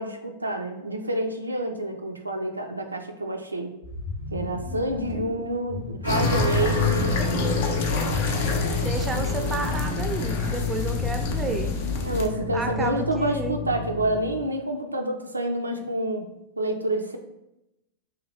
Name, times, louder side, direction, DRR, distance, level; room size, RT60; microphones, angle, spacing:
voice 1, 0.0-3.7 4.3-7.2 12.0-16.3 16.6-17.2, right 1 dB, 80° right, 4 dB, 0.3 m, -28 dB
sound 1, 3.8-13.1, left 2 dB, 65° left, 0.8 m, -35 dB
voice 2, 4.9-5.5 8.8-11.7 12.5-13.6, right 3 dB, 15° right, 5 dB, 0.4 m, -31 dB
sound 2, 6.0-14.4, left 3 dB, 90° left, 1.0 m, -29 dB
sound 3, 6.1-12.3, left 5 dB, 50° left, 0.5 m, -29 dB
3.1 x 2.2 x 4.1 m, 0.89 s
figure-of-eight pair, 90°, 0 cm